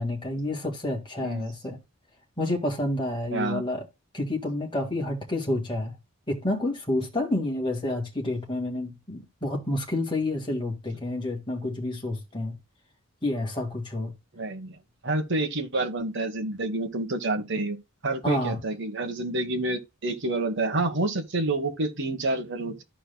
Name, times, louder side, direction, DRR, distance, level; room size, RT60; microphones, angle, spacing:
voice 1, 0.0-1.8 2.4-3.9 4.1-5.9 6.3-12.6 13.2-14.1 18.2-18.6, left 1 dB, 25° left, 1.9 m, -29 dB
voice 2, 3.3-3.6 14.3-14.8 15.0-17.8 18.0-22.8, right 2 dB, 55° right, 1.2 m, -28 dB
13.5 x 4.6 x 2.2 m
head